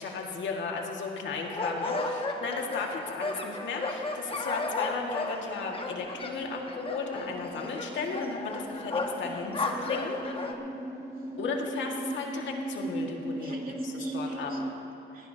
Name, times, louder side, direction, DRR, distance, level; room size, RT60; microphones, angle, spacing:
voice 1, 0.0-10.2 11.4-13.6 14.1-14.5, left 4 dB, 70° left, 0 dB, 2.0 m, -35 dB
sound 1, 1.4-10.5, left 2 dB, 30° left, 1.4 m, -34 dB
voice 2, 2.8-3.1 11.1-11.4 13.4-15.3, right 3 dB, 45° right, -1 dB, 2.5 m, -48 dB
sound 2, 3.2-14.7, right 1 dB, 15° right, 1.2 m, -39 dB
19.5 x 17.5 x 2.8 m, 2.9 s
cardioid pair, 90°, 20 cm